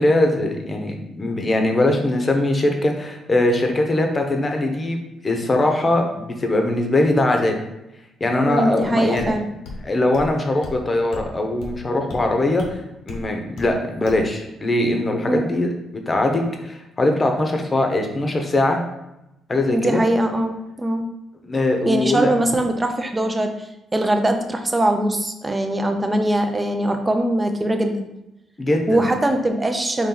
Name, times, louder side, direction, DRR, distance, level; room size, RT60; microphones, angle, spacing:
voice 1, 0.0-5.0 5.2-7.6 8.2-9.3 9.8-15.7 16.1-18.8 19.5-20.0 21.4-22.3 28.6-29.1, left 1 dB, 30° left, 3 dB, 0.8 m, -21 dB
voice 2, 8.4-9.4 15.3-15.5 19.7-21.0 21.9-28.1 28.9-30.1, right 1 dB, 20° right, 5 dB, 0.6 m, -21 dB
sound 1, 9.2-9.3 9.6-9.8 10.1-10.3 10.6-10.8 11.1-11.3 11.6-11.8 12.1-12.2 12.6-12.7 13.1-13.2 13.6-13.7 14.1-14.2, left 2 dB, 80° left, 1.0 m, -35 dB
4.4 x 3.1 x 3.9 m, 0.90 s
cardioid pair, 90°, 0 cm